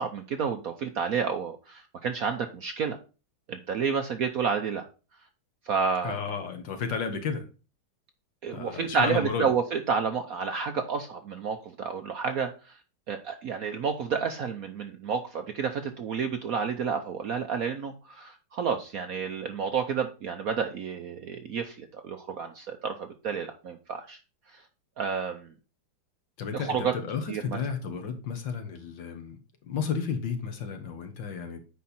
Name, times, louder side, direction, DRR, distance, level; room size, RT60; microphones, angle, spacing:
voice 1, 0.0-3.0 3.5-4.9 5.7-6.2 8.4-12.8 13.1-24.2 24.5-24.6 25.0-25.5 26.5-26.9 27.3-27.4, right 6 dB, 60° right, 6 dB, 0.9 m, -30 dB
voice 2, 6.0-7.5 8.5-9.5 26.4-31.6, left 6 dB, 70° left, 5 dB, 2.0 m, -33 dB
8.3 x 5.2 x 4.3 m, 0.33 s
omnidirectional pair, 2.2 m